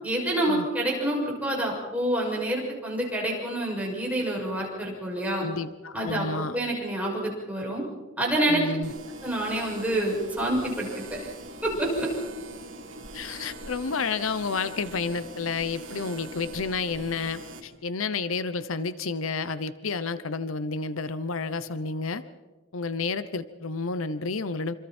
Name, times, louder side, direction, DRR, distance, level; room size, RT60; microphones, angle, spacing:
voice 1, 0.0-5.4 5.9-7.8 8.2-8.6 9.2-10.9 11.6-12.1, right 1 dB, 5° right, -3 dB, 6.7 m, -27 dB
voice 2, 5.4-6.6 8.5-8.9 13.1-22.2 22.7-24.7, left 4 dB, 80° left, 13 dB, 0.9 m, -30 dB
sound 1, 8.8-17.6, right 2 dB, 70° right, 3.0 m, -42 dB
26.5 x 26.5 x 4.4 m, 1.2 s
head